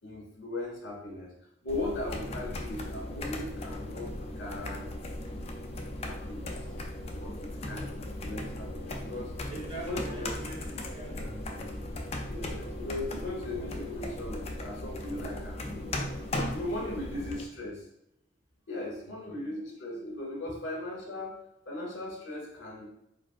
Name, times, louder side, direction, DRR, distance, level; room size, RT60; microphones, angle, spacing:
voice 1, 0.0-1.3 1.6-5.5 6.0-6.7 7.2-9.4 9.7-10.3 10.9-11.0 12.2-16.0 16.5-17.9 18.7-21.4 21.7-22.9, left 2 dB, 65° left, -3 dB, 1.7 m, -38 dB
sound 1, 1.7-17.4, left 1 dB, 30° left, 0.4 m, -37 dB
voice 2, 9.5-11.8 19.0-19.3 20.5-20.6, right 2 dB, 30° right, -4 dB, 1.1 m, -43 dB
4.7 x 4.2 x 2.4 m, 0.81 s
head